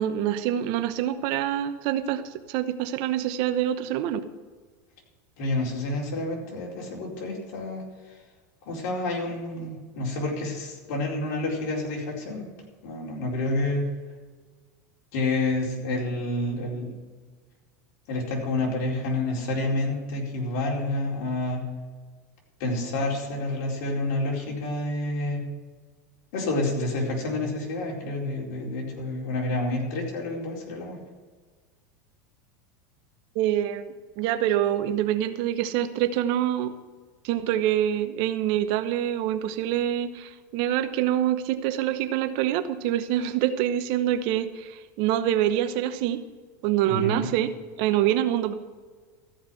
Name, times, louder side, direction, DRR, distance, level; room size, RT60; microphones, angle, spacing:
voice 1, 0.0-4.3 33.3-36.7 37.2-46.2 46.6-47.5 47.8-48.5, right 11 dB, 55° right, 11 dB, 1.0 m, -26 dB
voice 2, 5.4-8.2 8.6-12.4 12.8-13.8 15.1-16.9 18.1-21.6 22.6-25.4 26.3-31.0 46.8-47.3, left 2 dB, 65° left, -2 dB, 4.4 m, -29 dB
14.0 x 5.8 x 7.8 m, 1.5 s
supercardioid pair, 120°, 10 cm